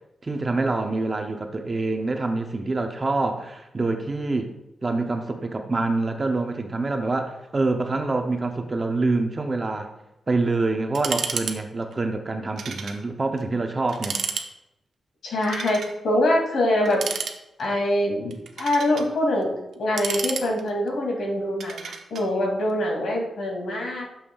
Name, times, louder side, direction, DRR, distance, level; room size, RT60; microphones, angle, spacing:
voice 1, 0.2-4.5 4.8-9.9 10.3-14.1, right 3 dB, 25° right, 5 dB, 0.6 m, -26 dB
sound 1, 10.9-11.6 11.8-11.9 12.6-13.0 13.4-13.5 13.9-14.5 15.4-15.9 16.8-17.7 18.3-19.1 19.7-20.9 21.6-22.3, right 5 dB, 70° right, 0.8 m, -31 dB
voice 2, 15.2-17.0 17.6-19.5 19.8-24.1, left 1 dB, 80° left, -1 dB, 2.4 m, -24 dB
12.0 x 7.1 x 2.3 m, 0.89 s
wide cardioid pair, 180°, 0 cm